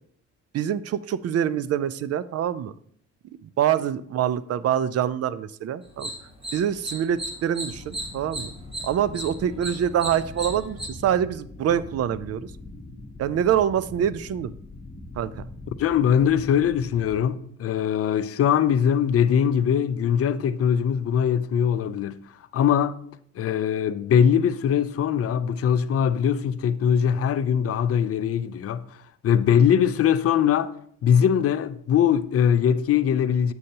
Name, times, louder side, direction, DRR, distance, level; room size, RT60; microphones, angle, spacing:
voice 1, 0.5-2.7 3.4-6.1 6.5-8.5 8.8-12.5 13.2-14.5 15.2-15.4, right 9 dB, 55° right, 0.4 m, -25 dB
sound 1, 5.8-10.9, right 1 dB, 20° right, 1.8 m, -36 dB
sound 2, 7.7-17.2, left 2 dB, 30° left, 1.1 m, -42 dB
voice 2, 15.8-22.2 22.5-23.0 23.4-28.8 29.2-30.7 31.0-33.5, left 8 dB, 50° left, 0.5 m, -21 dB
7.9 x 6.4 x 2.9 m
cardioid pair, 90°, 30 cm